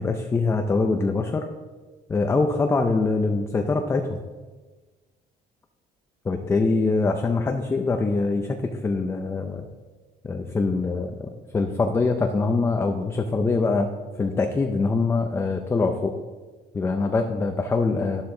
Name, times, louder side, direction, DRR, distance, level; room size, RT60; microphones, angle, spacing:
voice 1, 0.0-1.5 2.1-4.2 6.2-9.7 10.2-13.9 14.2-16.1 16.7-18.2, left 3 dB, 15° left, 5 dB, 0.5 m, -24 dB
11.5 x 11.5 x 3.8 m, 1.3 s
cardioid pair, 180°, 17 cm